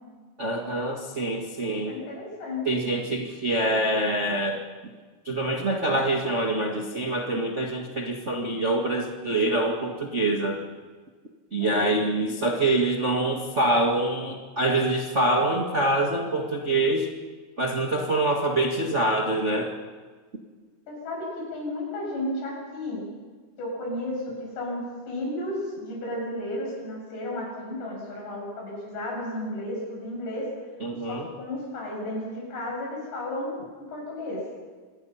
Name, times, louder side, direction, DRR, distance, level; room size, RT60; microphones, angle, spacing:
voice 1, 0.4-2.0 2.6-4.9 5.2-10.6 11.5-17.1 17.6-19.7 30.8-31.3, right 2 dB, 80° right, 0 dB, 0.6 m, -25 dB
voice 2, 1.9-2.7 11.6-12.0 20.9-23.1 23.6-30.5 31.1-34.4, left 1 dB, 85° left, -2 dB, 9.6 m, -33 dB
26.5 x 20.0 x 5.8 m, 1.5 s
omnidirectional pair, 4.7 m